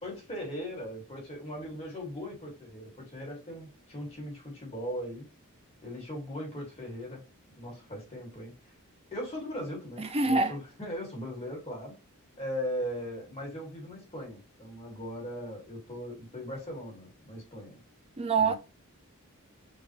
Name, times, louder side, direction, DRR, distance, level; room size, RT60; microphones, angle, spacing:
voice 1, 0.0-5.3 5.8-7.2 7.6-8.6 9.1-11.9 12.4-17.8 18.4-18.6, equal, 25° left, 2.1 m, -39 dB
voice 2, 10.0-10.6 18.2-18.6, right 4 dB, 25° right, 0.6 m, -25 dB
5.3 x 2.6 x 3.2 m
head